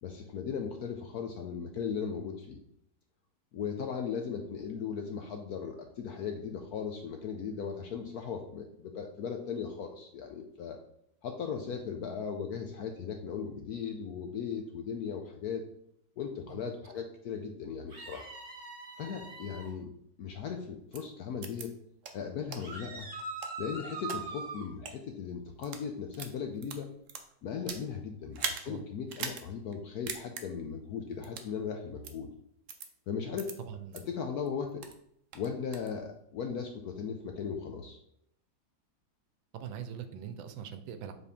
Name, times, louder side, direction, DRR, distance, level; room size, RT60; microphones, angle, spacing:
voice 1, 0.0-2.6 3.5-10.8 11.2-15.6 16.2-18.2 19.0-19.9 20.2-21.7 22.1-23.1 23.6-26.9 27.4-32.3 33.1-33.6 33.9-34.8 35.3-38.0, left 6 dB, 75° left, 4 dB, 0.9 m, -37 dB
sound 1, 17.9-19.7 22.6-24.7, right 3 dB, 30° right, 1.5 m, -42 dB
sound 2, 20.9-21.0 21.4-21.6 22.0-22.1 22.5-22.6 23.2-24.2 24.7-24.9 25.5-25.8 26.1-27.9 28.3-28.6 29.1-29.4 29.7-29.8 30.1-30.4 31.2-31.5 32.0-32.1 32.7-32.9 33.4-33.5 33.9-34.0 34.5-35.0 35.3-35.9, right 6 dB, 65° right, 0.7 m, -39 dB
voice 2, 33.6-34.1 39.5-41.1, right 8 dB, 85° right, 9 dB, 1.4 m, -42 dB
7.1 x 4.2 x 3.5 m, 0.73 s
omnidirectional pair, 2.1 m